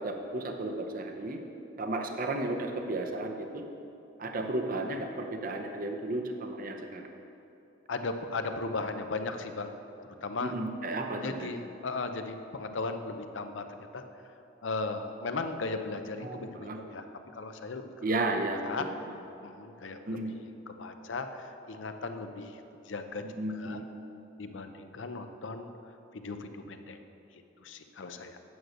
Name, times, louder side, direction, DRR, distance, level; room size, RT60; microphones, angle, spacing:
voice 1, 0.0-1.4 1.8-3.6 4.2-7.0 10.4-11.5 16.2-16.8 18.0-18.9 20.1-20.3 23.3-23.8, right 2 dB, 50° right, 4 dB, 0.7 m, -33 dB
voice 2, 7.9-9.8 10.2-10.5 11.2-14.0 14.6-17.0 17.3-17.9 18.6-18.8 19.4-23.2 23.5-23.8 24.4-25.7 26.1-27.0 27.6-28.4, left 3 dB, 85° left, 7 dB, 0.7 m, -37 dB
9.1 x 6.3 x 6.4 m, 2.9 s
head